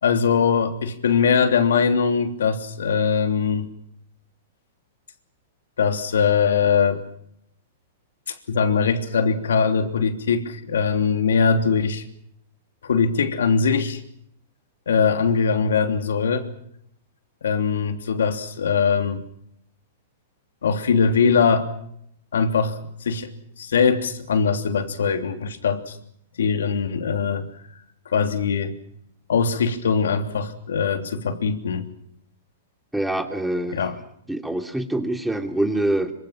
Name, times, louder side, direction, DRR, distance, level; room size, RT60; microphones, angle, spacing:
voice 1, 0.0-3.7 5.8-7.0 8.3-12.0 12.8-14.0 14.9-16.5 17.4-19.2 20.6-21.7 22.3-23.3 23.6-26.0 26.4-27.5 28.1-28.8 29.3-31.9 33.7-34.0, left 6 dB, 85° left, 7 dB, 3.2 m, -21 dB
voice 2, 32.9-33.8 34.3-36.1, right 1 dB, 5° right, 5 dB, 3.1 m, -25 dB
26.0 x 25.5 x 6.0 m, 0.73 s
hypercardioid pair, 130°, 0 cm